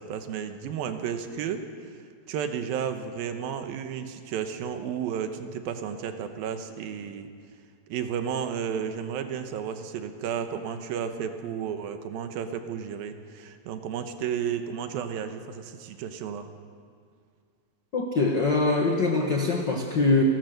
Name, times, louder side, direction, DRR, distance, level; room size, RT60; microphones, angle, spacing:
voice 1, 0.0-1.7 2.3-7.3 7.9-16.5, right 8 dB, 75° right, 7 dB, 2.8 m, -32 dB
voice 2, 17.9-20.2, left 3 dB, 75° left, 2 dB, 1.0 m, -23 dB
30.0 x 13.5 x 6.6 m, 2.2 s
omnidirectional pair, 4.3 m